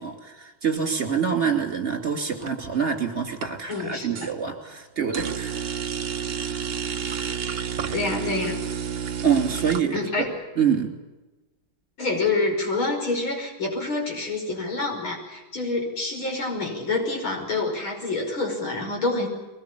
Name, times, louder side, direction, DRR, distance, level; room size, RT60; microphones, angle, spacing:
voice 1, 0.0-5.7 9.2-10.1 10.6-10.9, right 7 dB, 30° right, 4 dB, 3.2 m, -26 dB
sound 1, 2.4-2.9 3.3-4.3 5.1-9.8, right 7 dB, 50° right, 0.7 m, -30 dB
voice 2, 3.7-4.3 7.9-8.6 9.9-10.3 12.0-19.3, left 3 dB, 75° left, 1 dB, 6.4 m, -27 dB
22.5 x 19.5 x 8.4 m, 1.1 s
omnidirectional pair, 2.2 m